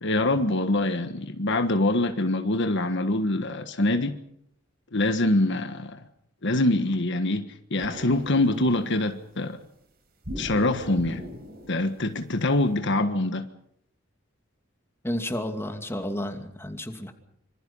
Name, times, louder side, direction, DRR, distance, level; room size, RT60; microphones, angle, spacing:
voice 1, 0.0-4.2 4.9-6.0 6.4-9.6 10.4-11.2 11.7-13.5, left 2 dB, 60° left, 1.5 m, -24 dB
sound 1, 7.8-9.2 10.2-12.7, equal, 45° right, 4.8 m, -40 dB
voice 2, 15.0-17.1, left 1 dB, 10° left, 2.6 m, -31 dB
26.0 x 25.0 x 5.6 m
head